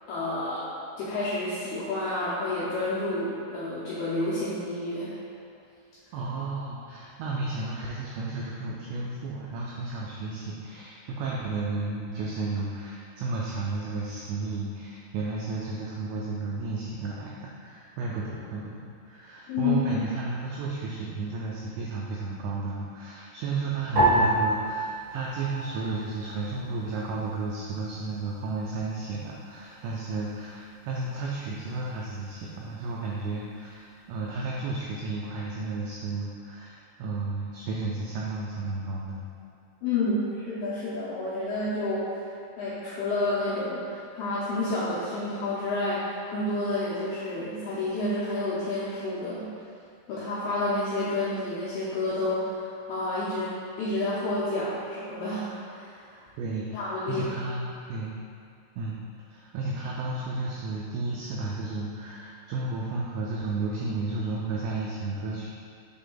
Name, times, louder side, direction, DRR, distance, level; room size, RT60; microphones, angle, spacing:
voice 1, 0.1-0.7 1.0-5.2 19.5-20.0 39.8-42.3 42.6-49.4 50.1-56.3 56.7-57.3, left 2 dB, 80° left, -10 dB, 2.3 m, -30 dB
voice 2, 6.1-18.7 19.1-39.2 56.4-56.8 57.1-58.2 58.8-59.0 59.3-65.5, right 3 dB, 90° right, -4 dB, 2.5 m, -33 dB
sound 1, 24.0-26.5 26.7-27.6 28.3-28.7, right 1 dB, 70° right, 1.6 m, -27 dB
7.7 x 3.5 x 3.8 m, 2.3 s
omnidirectional pair, 5.6 m